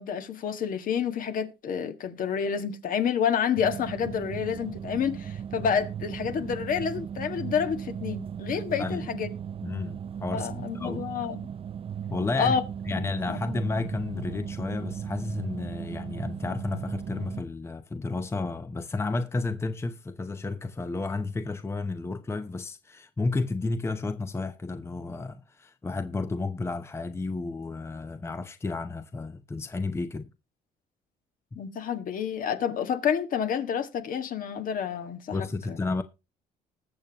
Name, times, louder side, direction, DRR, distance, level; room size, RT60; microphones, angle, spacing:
voice 1, 0.0-9.3 10.3-11.4 12.4-12.6 13.0-13.4 31.5-35.4 35.7-35.8, left 7 dB, 55° left, 1.6 m, -29 dB
sound 1, 3.6-17.4, right 8 dB, 35° right, 0.5 m, -37 dB
voice 2, 9.6-10.5 10.7-11.0 12.1-12.6 12.9-30.3 35.3-36.0, left 3 dB, 15° left, 0.8 m, -32 dB
20.0 x 7.2 x 2.9 m
cardioid pair, 110°, 17 cm